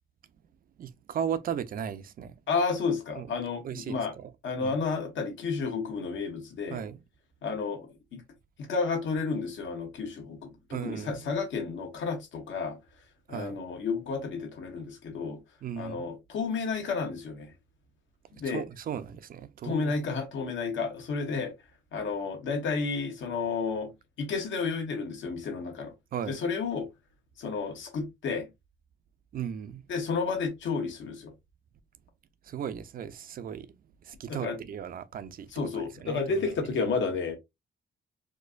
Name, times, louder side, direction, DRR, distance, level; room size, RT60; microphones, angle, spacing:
voice 1, 0.8-2.3 3.1-3.3 3.6-4.3 4.6-4.8 6.7-7.0 10.7-11.3 13.3-13.6 15.6-16.1 18.4-20.0 26.1-26.4 29.3-29.8 32.4-36.5, right 8 dB, 50° right, 0.4 m, -36 dB
voice 2, 2.5-4.1 4.4-6.8 7.4-8.2 8.6-12.8 13.3-15.4 15.8-17.5 18.3-18.6 19.6-21.5 21.9-23.9 24.2-25.9 26.3-26.9 27.4-28.5 29.9-31.3 34.3-34.6 35.5-37.4, left 4 dB, 85° left, 1.2 m, -31 dB
4.3 x 2.6 x 2.4 m
wide cardioid pair, 155°, 19 cm